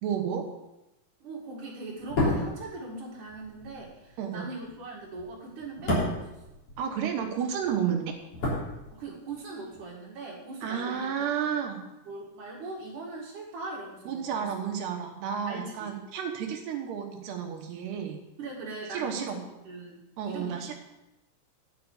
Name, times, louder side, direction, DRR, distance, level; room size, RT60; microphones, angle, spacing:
voice 1, 0.0-0.5 4.2-4.5 6.8-8.1 10.6-11.8 14.1-18.2 18.9-19.4 20.2-20.8, right 8 dB, 75° right, 3 dB, 3.3 m, -31 dB
voice 2, 1.2-6.6 7.8-8.0 8.9-11.2 12.0-14.5 15.5-16.0 18.4-20.7, right 3 dB, 55° right, -6 dB, 3.1 m, -40 dB
sound 1, 2.0-7.3 7.5-9.4 9.6-9.8, left 1 dB, 35° left, 3.9 m, -32 dB
11.0 x 6.7 x 6.5 m, 0.94 s
omnidirectional pair, 4.8 m